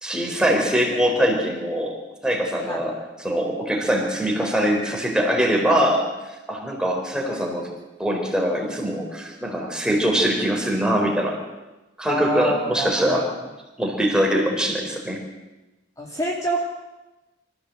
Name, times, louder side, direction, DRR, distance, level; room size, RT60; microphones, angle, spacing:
voice 1, 0.0-2.9 3.2-6.1 6.5-7.7 8.0-11.4 12.0-13.3 13.8-15.2, equal, 5° right, 1 dB, 4.0 m, -22 dB
voice 2, 12.1-13.3 16.0-16.6, equal, 20° left, -2 dB, 2.7 m, -26 dB
24.5 x 15.0 x 7.8 m, 1.1 s
head